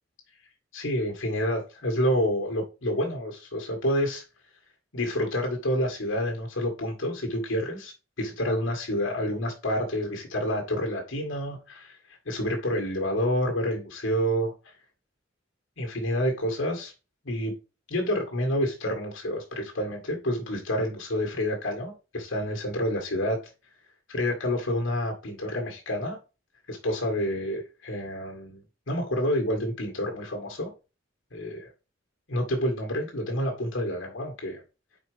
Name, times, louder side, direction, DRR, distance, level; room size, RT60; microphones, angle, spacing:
voice 1, 0.7-4.2 4.9-12.0 12.3-14.7 15.8-16.9 17.2-17.5 17.9-23.4 24.1-26.2 26.7-28.6 28.9-30.7 31.3-31.7 32.3-34.6, equal, 80° left, 2.0 m, -28 dB
5.2 x 4.9 x 5.1 m
head